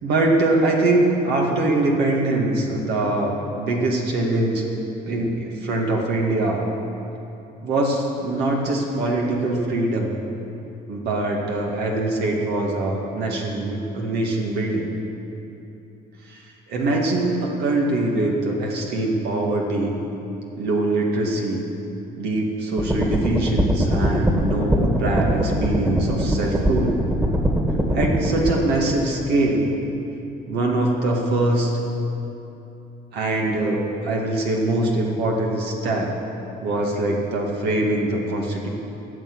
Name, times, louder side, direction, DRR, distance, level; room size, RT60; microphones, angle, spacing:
voice 1, 0.0-4.7 5.1-6.6 7.6-10.2 10.9-14.9 16.7-19.9 20.6-21.6 22.2-27.0 27.9-29.7 30.5-31.8 33.1-36.1 36.6-38.7, right 2 dB, 75° right, -1 dB, 2.2 m, -23 dB
sound 1, 22.8-28.5, equal, 15° right, 2.1 m, -21 dB
14.5 x 6.7 x 9.7 m, 2.9 s
cardioid pair, 110°, 17 cm